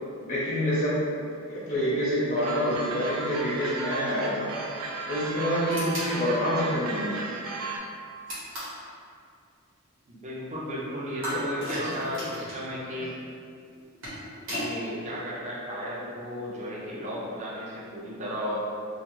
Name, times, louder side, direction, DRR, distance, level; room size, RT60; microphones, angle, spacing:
voice 1, 0.2-1.0 1.5-4.5 5.1-7.2 11.3-12.1 12.9-13.0, equal, 45° left, -9 dB, 0.5 m, -27 dB
sound 1, 2.4-7.8, right 3 dB, 90° right, 0.4 m, -35 dB
sound 2, 5.7-6.1 8.3-8.8 11.2-12.6 13.7-14.7, equal, 65° right, 1.1 m, -35 dB
voice 2, 10.1-13.1 14.5-18.5, equal, 35° right, -6 dB, 0.5 m, -34 dB
2.3 x 2.3 x 3.0 m, 2.4 s
head